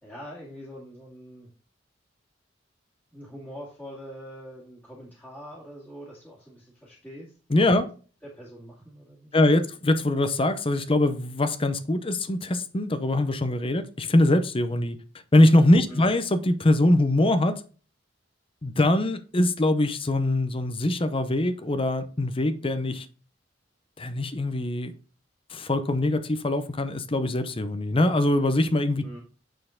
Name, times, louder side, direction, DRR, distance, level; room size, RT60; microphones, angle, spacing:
voice 1, 0.0-1.5 3.1-7.4 7.7-7.9 8.2-9.4 15.9-16.2 29.0-29.2, equal, 10° left, 2.1 m, -44 dB
voice 2, 7.5-7.9 9.3-15.0 15.3-17.6 18.6-23.1 24.0-24.9 25.5-29.2, left 1 dB, 30° left, 0.7 m, -23 dB
9.3 x 4.4 x 3.7 m
head